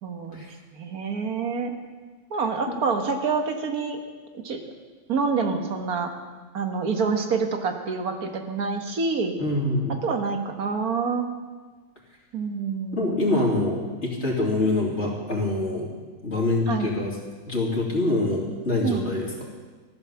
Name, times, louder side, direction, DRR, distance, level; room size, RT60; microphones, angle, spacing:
voice 1, 0.0-0.5 0.7-1.7 2.3-4.0 4.4-4.6 5.1-6.1 6.5-9.4 10.0-11.3 12.3-13.2 16.7-16.9 18.8-19.1, right 5 dB, 90° right, 4 dB, 1.9 m, -27 dB
voice 2, 9.4-9.9 12.9-15.9 16.2-17.1 17.5-19.5, left 2 dB, 50° left, -2 dB, 3.2 m, -25 dB
15.0 x 11.0 x 7.1 m, 1.4 s
omnidirectional pair, 1.5 m